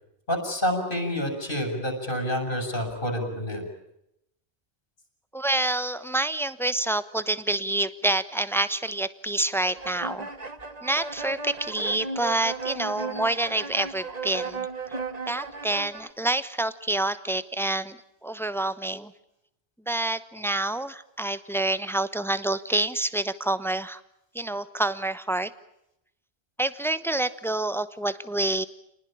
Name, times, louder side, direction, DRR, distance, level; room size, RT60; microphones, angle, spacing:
voice 1, 0.3-3.6, equal, 55° left, 4 dB, 6.9 m, -28 dB
voice 2, 5.3-10.3 10.8-15.0 15.3-19.1 19.9-24.0 24.3-25.5 26.6-28.6, right 2 dB, ahead, 14 dB, 1.0 m, -27 dB
sound 1, 9.8-16.1, right 4 dB, 40° right, 1.6 m, -35 dB
29.0 x 20.0 x 8.9 m, 0.82 s
omnidirectional pair, 1.1 m